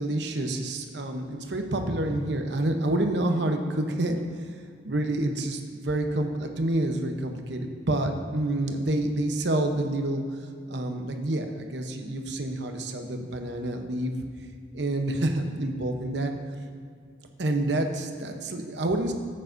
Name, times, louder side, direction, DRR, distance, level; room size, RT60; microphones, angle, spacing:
voice 1, 0.0-4.2 4.8-10.2 10.7-14.1 14.7-16.3 17.4-19.1, right 1 dB, 65° right, 5 dB, 0.9 m, -28 dB
13.5 x 8.7 x 2.6 m, 2.2 s
head